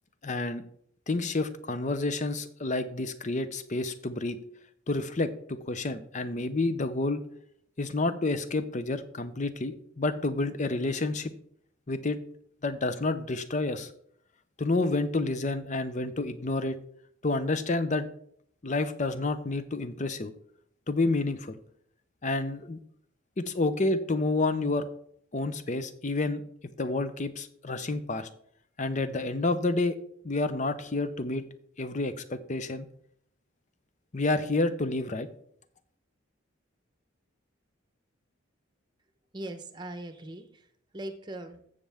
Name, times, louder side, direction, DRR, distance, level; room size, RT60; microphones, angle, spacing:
voice 1, 0.2-0.6 1.1-4.4 4.9-7.2 7.8-11.3 11.9-12.2 12.6-13.9 14.6-16.8 17.2-18.1 18.6-20.3 20.9-21.6 22.2-22.8 23.4-24.9 25.3-26.4 26.8-28.3 28.8-30.0 30.2-31.4 31.8-32.9 34.1-35.3, left 2 dB, 35° left, 12 dB, 0.7 m, -29 dB
voice 2, 39.3-41.6, right 1 dB, 20° right, 8 dB, 0.9 m, -40 dB
14.5 x 6.5 x 3.5 m, 0.66 s
head